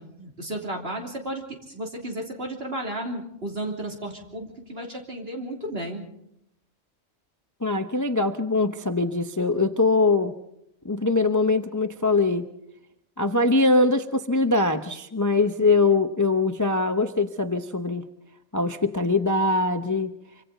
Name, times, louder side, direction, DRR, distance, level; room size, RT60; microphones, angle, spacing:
voice 1, 0.0-6.0, right 1 dB, 55° right, 0 dB, 3.4 m, -33 dB
voice 2, 7.6-10.3 10.8-12.5 13.2-18.0 18.5-20.1, left 3 dB, 20° left, 8 dB, 0.6 m, -22 dB
26.0 x 25.0 x 4.0 m, 0.79 s
omnidirectional pair, 1.3 m